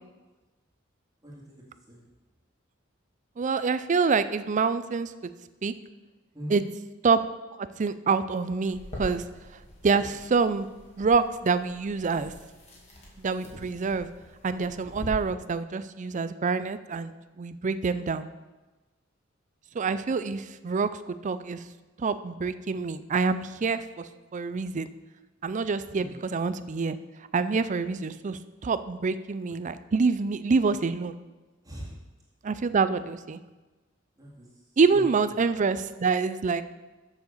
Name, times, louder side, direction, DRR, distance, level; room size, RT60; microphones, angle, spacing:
voice 1, 1.2-2.0 6.3-6.6 25.9-26.2 31.6-32.0 34.2-34.5 34.9-35.0 35.3-35.4, right 1 dB, 20° right, -5 dB, 2.3 m, -41 dB
voice 2, 3.4-5.1 5.6-5.7 6.5-6.6 7.0-7.2 7.6-9.2 9.8-10.7 11.0-12.3 13.2-14.1 14.4-18.3 19.7-21.6 22.0-24.9 25.4-27.0 27.3-31.2 32.4-33.4 34.8-36.6, right 4 dB, 40° right, 13 dB, 0.4 m, -26 dB
sound 1, 8.7-15.1, left 1 dB, 35° left, 2.3 m, -45 dB
7.2 x 6.5 x 6.8 m, 1.2 s
head